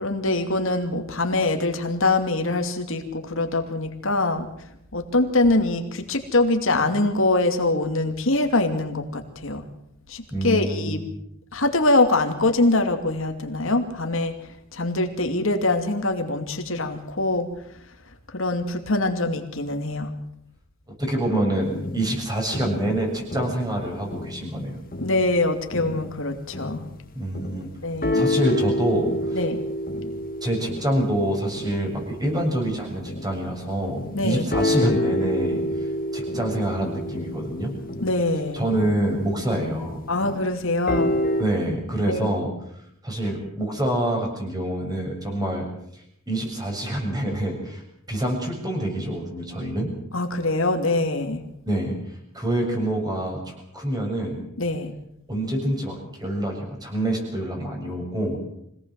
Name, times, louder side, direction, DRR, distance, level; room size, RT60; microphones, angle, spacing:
voice 1, 0.0-4.5 4.9-9.7 10.1-11.0 11.5-14.4 14.7-17.5 18.3-20.1 25.0-26.8 27.8-28.3 29.3-29.6 34.1-34.4 38.0-38.7 40.1-41.1 42.1-42.2 50.1-51.4 54.6-54.9, left 2 dB, 65° left, 5 dB, 2.7 m, -23 dB
voice 2, 10.3-11.0 21.0-24.8 27.1-27.7 28.1-29.4 30.4-37.7 38.5-40.0 41.4-42.5 43.0-45.7 45.9-47.8 48.1-49.9 51.7-52.0 52.3-54.4 55.3-58.4, right 1 dB, 20° right, 2 dB, 7.0 m, -26 dB
sound 1, 21.7-24.6 24.9-33.5 33.9-41.4, left 1 dB, 40° left, 2.1 m, -29 dB
25.0 x 18.0 x 7.7 m, 0.75 s
head